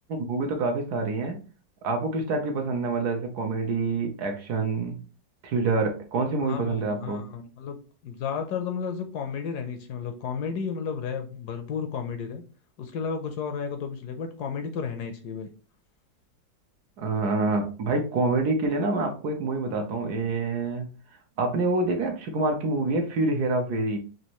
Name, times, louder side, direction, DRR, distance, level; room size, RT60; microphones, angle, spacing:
voice 1, 0.1-1.4 1.8-5.0 5.4-7.2 17.0-20.9 21.4-24.0, right 3 dB, 65° right, 4 dB, 1.2 m, -26 dB
voice 2, 6.4-7.8 8.0-12.4 12.8-15.5, left 6 dB, 70° left, 6 dB, 1.0 m, -33 dB
6.2 x 2.5 x 2.9 m, 0.36 s
omnidirectional pair, 2.0 m